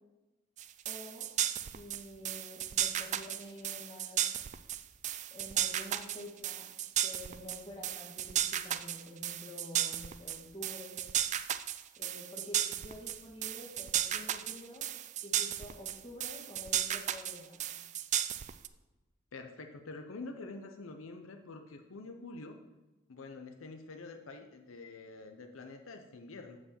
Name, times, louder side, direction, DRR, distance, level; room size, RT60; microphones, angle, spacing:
sound 1, 0.6-18.7, right 11 dB, 35° right, 0.3 m, -34 dB
voice 1, 0.9-1.3 1.7-4.3 5.3-6.7 7.0-11.1 12.0-14.9 15.2-17.7, left 1 dB, 30° left, -1 dB, 1.8 m, -48 dB
voice 2, 19.3-22.6 23.1-26.6, left 3 dB, 85° left, 5 dB, 0.7 m, -46 dB
8.5 x 4.6 x 6.9 m, 1.1 s
head